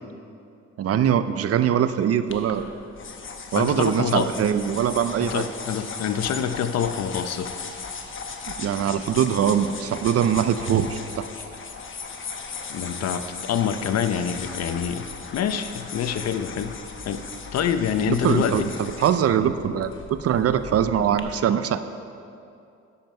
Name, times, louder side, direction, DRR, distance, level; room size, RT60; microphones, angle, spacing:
voice 1, 0.8-2.7 3.5-5.5 8.6-11.3 18.1-21.9, right 9 dB, 55° right, 12 dB, 0.5 m, -22 dB
sound 1, 2.3-21.2, left 5 dB, 40° left, 1.0 m, -37 dB
voice 2, 3.5-4.3 5.2-7.5 12.7-15.1 15.3-16.8 17.0-17.2 17.5-18.7, left 8 dB, 60° left, 10 dB, 0.7 m, -26 dB
10.5 x 7.4 x 5.3 m, 2.6 s
cardioid pair, 90°, 30 cm